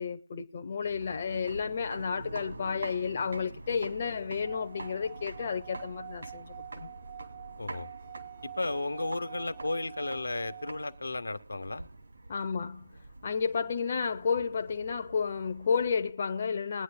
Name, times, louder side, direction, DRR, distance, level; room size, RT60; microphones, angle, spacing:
voice 1, 0.0-6.9 12.3-16.8, left 6 dB, 40° left, 0.8 m, -32 dB
sound 1, 0.8-16.1, right 2 dB, 65° right, 2.6 m, -46 dB
Singing / Glass, 4.4-11.0, right 10 dB, 30° right, 0.5 m, -47 dB
voice 2, 7.6-7.9 8.4-11.9, left 2 dB, 75° left, 1.1 m, -34 dB
21.5 x 10.0 x 2.2 m
figure-of-eight pair, 150°, 0 cm